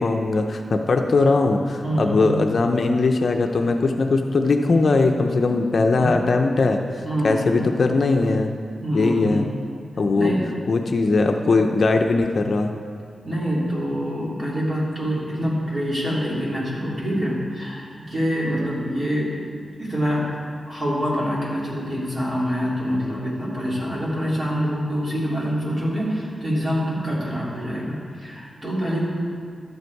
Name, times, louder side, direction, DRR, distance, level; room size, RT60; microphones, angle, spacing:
voice 1, 0.0-6.8 7.2-8.5 8.9-9.5 10.0-10.3 10.7-12.7 22.9-23.2, left 3 dB, 55° left, 4 dB, 0.6 m, -20 dB
voice 2, 1.8-2.5 6.0-6.2 7.0-7.6 8.8-9.3 10.1-10.4 13.2-19.4 19.8-20.3 20.7-29.1, equal, 30° right, -6 dB, 3.1 m, -25 dB
12.5 x 8.1 x 4.7 m, 2.2 s
wide cardioid pair, 115°, 0 cm